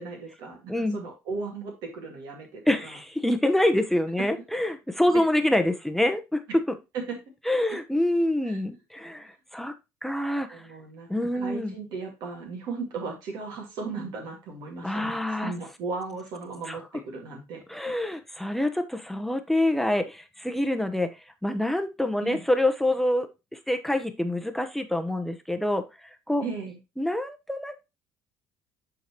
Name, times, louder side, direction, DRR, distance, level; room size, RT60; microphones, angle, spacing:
voice 1, 0.0-2.6 7.1-7.2 8.5-8.6 10.5-11.1 11.3-17.6 22.2-22.4 26.4-26.8, right 4 dB, 70° right, 1 dB, 2.1 m, -36 dB
voice 2, 2.7-6.4 6.7-6.8 7.5-9.7 10.0-10.7 11.1-11.7 14.8-15.5 16.7-16.8 17.7-21.2 21.4-25.9 26.3-26.4 27.0-27.9, left 1 dB, 5° left, 7 dB, 0.9 m, -26 dB
9.2 x 4.0 x 3.0 m, 0.24 s
supercardioid pair, 80°, 7 cm